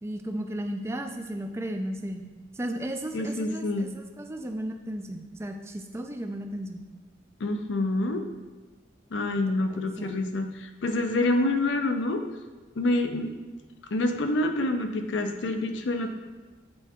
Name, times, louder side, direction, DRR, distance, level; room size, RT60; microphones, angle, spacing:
voice 1, 0.0-2.3 2.5-6.8 9.7-10.2, right 1 dB, 15° right, 5 dB, 0.3 m, -34 dB
voice 2, 3.1-3.9 7.4-8.2 9.1-12.2 12.8-13.3 13.9-16.1, left 2 dB, 70° left, 6 dB, 0.6 m, -27 dB
7.8 x 4.5 x 2.9 m, 1.3 s
head